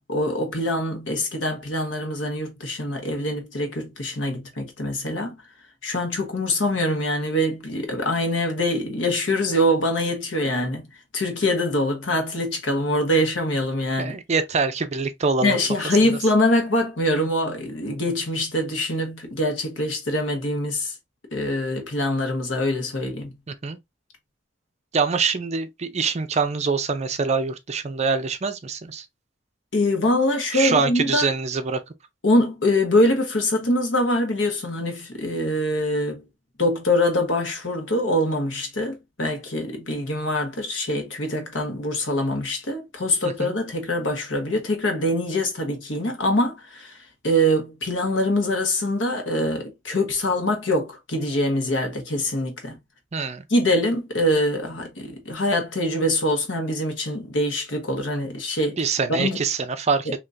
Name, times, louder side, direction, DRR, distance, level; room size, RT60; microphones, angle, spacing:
voice 1, 0.0-5.3 5.8-10.9 11.1-14.2 15.4-20.9 21.3-23.3 29.7-31.3 32.2-36.2 36.6-46.9 47.2-52.8 53.5-58.8 59.1-59.4, left 1 dB, 85° left, 1.2 m, -24 dB
voice 2, 14.0-15.6 23.5-23.8 24.9-29.1 30.5-31.8 43.4-43.5 53.1-53.4 58.8-60.2, right 5 dB, 35° right, 0.5 m, -24 dB
3.6 x 2.8 x 2.6 m
head